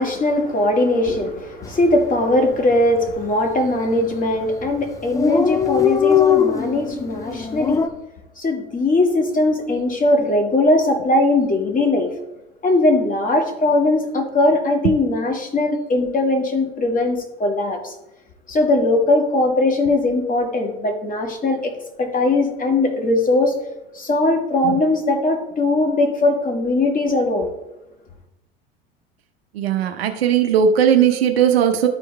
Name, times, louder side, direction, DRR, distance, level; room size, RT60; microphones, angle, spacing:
voice 1, 0.0-7.9 8.4-12.1 12.6-18.0 18.5-21.7 22.0-23.5 23.9-27.5, left 2 dB, 25° left, 3 dB, 2.0 m, -19 dB
Dog, 1.7-1.9 2.2-2.3 2.5-3.2 3.9-4.1 4.4-4.5 4.7-4.8 4.9-7.9, left 7 dB, 10° left, 0.4 m, -20 dB
voice 2, 29.5-31.9, right 8 dB, 80° right, 5 dB, 0.8 m, -17 dB
12.5 x 4.6 x 3.3 m, 0.94 s
hypercardioid pair, 80°, 30 cm